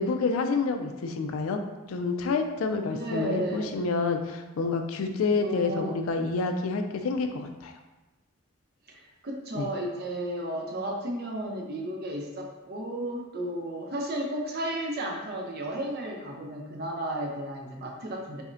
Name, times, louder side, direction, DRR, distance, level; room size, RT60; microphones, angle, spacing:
voice 1, 0.0-1.6 1.9-7.7 9.5-9.7, left 4 dB, 80° left, 6 dB, 0.4 m, -28 dB
voice 2, 2.9-3.7 5.4-6.0 8.9-18.4, right 1 dB, 50° right, 0 dB, 0.6 m, -33 dB
5.1 x 2.1 x 2.5 m, 1.1 s
head